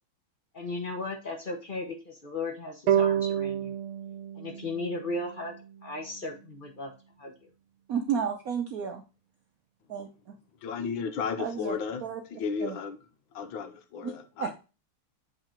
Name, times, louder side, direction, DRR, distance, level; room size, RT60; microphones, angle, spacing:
voice 1, 0.5-3.7 4.4-5.6 5.8-6.9 7.2-7.5, left 2 dB, 40° left, 0.7 m, -36 dB
sound 1, 2.9-6.1, right 9 dB, 85° right, 1.5 m, -29 dB
voice 2, 7.9-9.0 9.9-10.1 11.4-11.7 12.0-12.2 12.6-12.8 14.0-14.1 14.4-14.5, right 7 dB, 70° right, 0.8 m, -31 dB
voice 3, 10.6-13.0 13.3-14.5, left 6 dB, 75° left, 1.6 m, -34 dB
7.9 x 3.8 x 4.4 m
omnidirectional pair, 2.3 m